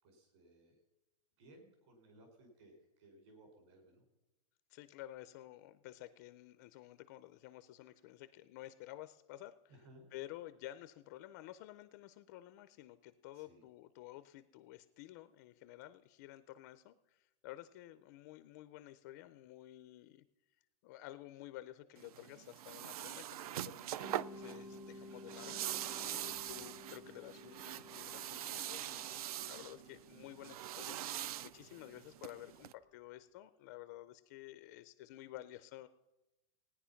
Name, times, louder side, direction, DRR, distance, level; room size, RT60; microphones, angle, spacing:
voice 1, 0.0-0.8 1.4-4.0 9.7-10.1 13.3-13.6 26.4-26.6, right 1 dB, 50° right, 3 dB, 5.0 m, -61 dB
voice 2, 4.7-9.8 10.1-20.3 20.8-35.9, left 15 dB, 30° left, 12 dB, 0.4 m, -52 dB
sound 1, 22.0-32.7, right 12 dB, 70° right, 0.4 m, -44 dB
Mallet percussion, 24.0-32.8, left 1 dB, 10° right, 0.6 m, -55 dB
17.5 x 9.8 x 5.7 m, 1.0 s
supercardioid pair, 175°, 20 cm